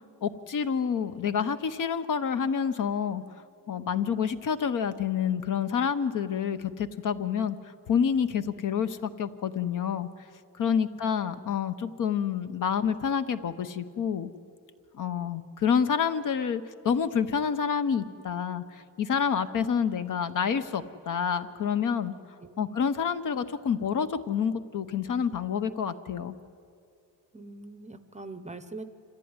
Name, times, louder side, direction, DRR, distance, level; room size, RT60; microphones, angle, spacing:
voice 1, 0.2-3.2 3.7-7.6 7.9-10.1 10.6-14.3 14.9-22.1 22.6-26.4, left 7 dB, 45° left, 10 dB, 0.9 m, -28 dB
voice 2, 22.4-22.8 27.3-28.8, right 3 dB, 15° right, 11 dB, 0.7 m, -43 dB
26.0 x 14.5 x 9.7 m, 2.5 s
cardioid pair, 155°, 42 cm